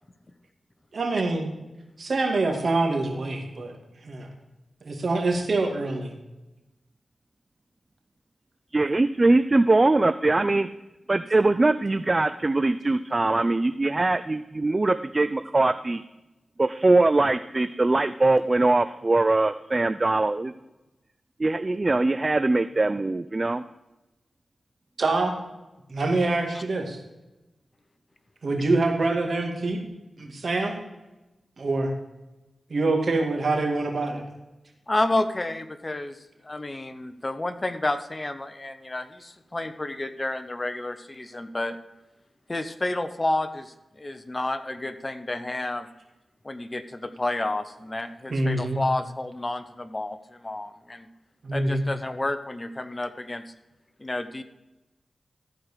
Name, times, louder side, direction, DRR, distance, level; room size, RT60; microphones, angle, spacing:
voice 1, 0.9-1.5 2.0-3.7 4.0-4.3 4.8-6.1 25.0-25.3 25.9-27.0 28.4-29.8 30.2-30.7 31.6-31.9 32.7-34.2 48.3-48.8 51.4-51.9, right 2 dB, 65° right, 3 dB, 2.3 m, -25 dB
voice 2, 8.7-10.7 11.1-16.0 16.6-20.5 21.4-23.6, right 2 dB, 35° right, 12 dB, 0.4 m, -22 dB
voice 3, 34.9-36.2 36.4-41.8 42.5-45.9 46.4-51.1 51.5-53.4 54.0-54.4, left 2 dB, 30° left, 11 dB, 0.9 m, -30 dB
14.0 x 4.8 x 6.7 m, 1.0 s
cardioid pair, 60°, 0 cm